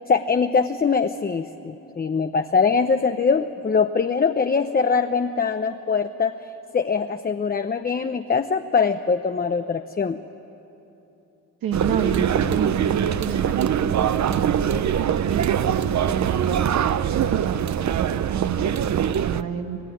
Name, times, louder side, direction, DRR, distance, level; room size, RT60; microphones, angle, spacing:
voice 1, 0.1-6.4 6.7-10.2, left 5 dB, 25° left, 7 dB, 0.7 m, -22 dB
voice 2, 11.6-14.9 15.3-19.8, right 6 dB, 80° right, 4 dB, 2.0 m, -30 dB
sound 1, 11.7-19.4, right 9 dB, 55° right, 0.7 m, -23 dB
25.5 x 17.5 x 10.0 m, 3.0 s
cardioid pair, 100°, 34 cm